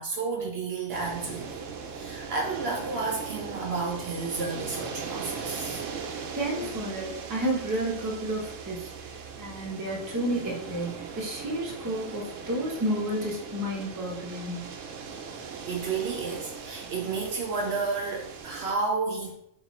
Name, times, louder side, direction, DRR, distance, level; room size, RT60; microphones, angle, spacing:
voice 1, 0.0-1.6 1.9-5.8 15.7-19.4, right 4 dB, 60° right, 1 dB, 0.8 m, -31 dB
sound 1, 0.9-18.7, right 5 dB, 85° right, 0.9 m, -39 dB
voice 2, 6.4-14.6, right 1 dB, 20° right, -2 dB, 0.6 m, -31 dB
3.1 x 2.9 x 4.2 m, 0.74 s
omnidirectional pair, 1.3 m